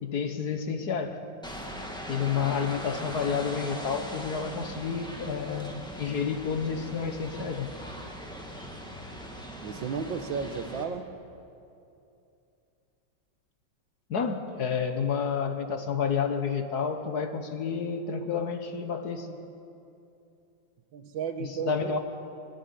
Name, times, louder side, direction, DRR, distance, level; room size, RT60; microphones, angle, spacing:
voice 1, 0.0-1.2 2.1-7.7 14.1-19.3 21.4-22.0, left 6 dB, 55° left, 7 dB, 1.6 m, -30 dB
sound 1, 1.4-10.8, equal, ahead, 1.9 m, -40 dB
voice 2, 9.6-11.1 20.9-22.0, right 6 dB, 75° right, 9 dB, 1.8 m, -34 dB
26.5 x 11.0 x 9.8 m, 2.7 s
omnidirectional pair, 2.1 m